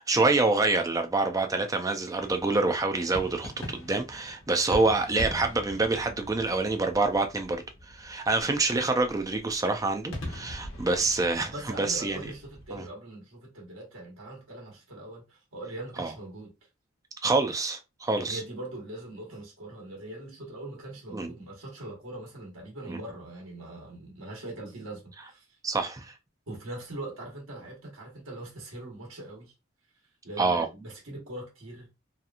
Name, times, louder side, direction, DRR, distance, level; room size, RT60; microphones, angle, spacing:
voice 1, 0.0-12.2 12.7-12.8 16.0-16.1 17.2-18.4 21.1-21.3 22.9-23.0 25.6-26.1 30.4-30.7, right 3 dB, 15° right, 0.4 m, -26 dB
sound 1, 2.1-12.8, left 1 dB, 80° left, 0.9 m, -42 dB
voice 2, 11.5-16.5 18.2-25.6 26.5-29.5 30.2-31.9, right 1 dB, 80° right, 1.1 m, -41 dB
2.8 x 2.4 x 2.4 m
head